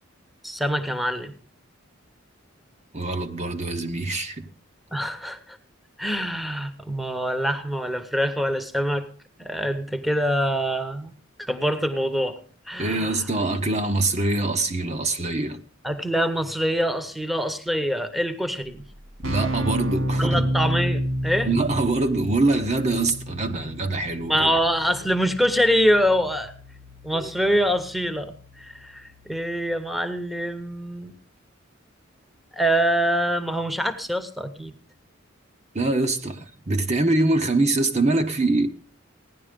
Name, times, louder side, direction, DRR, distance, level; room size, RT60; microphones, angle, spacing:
voice 1, 0.4-1.3 4.9-5.6 6.0-9.1 9.4-11.1 11.4-12.4 12.7-13.1 15.8-18.8 20.2-21.5 24.3-26.5 27.0-28.3 28.6-31.1 32.5-34.7, equal, ahead, 1.1 m, -24 dB
voice 2, 2.9-4.5 12.8-15.6 19.2-20.4 21.4-24.5 27.1-27.3 35.7-38.7, right 2 dB, 35° right, 1.0 m, -24 dB
Keyboard (musical), 18.7-18.8 18.9-29.6, equal, 70° right, 2.8 m, -31 dB
16.5 x 11.0 x 5.2 m
head